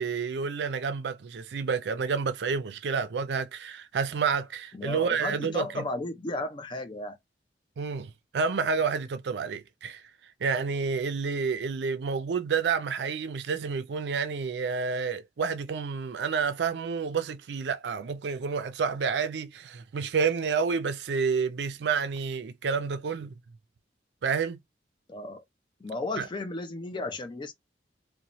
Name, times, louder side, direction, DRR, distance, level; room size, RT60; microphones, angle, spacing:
voice 1, 0.0-5.8 7.8-10.0 10.4-23.3 24.2-24.6 26.2-26.3, right 5 dB, 75° right, 0.4 m, -29 dB
voice 2, 4.7-7.2 25.1-25.4 25.8-27.5, left 2 dB, 25° left, 0.4 m, -34 dB
2.7 x 2.1 x 2.9 m
head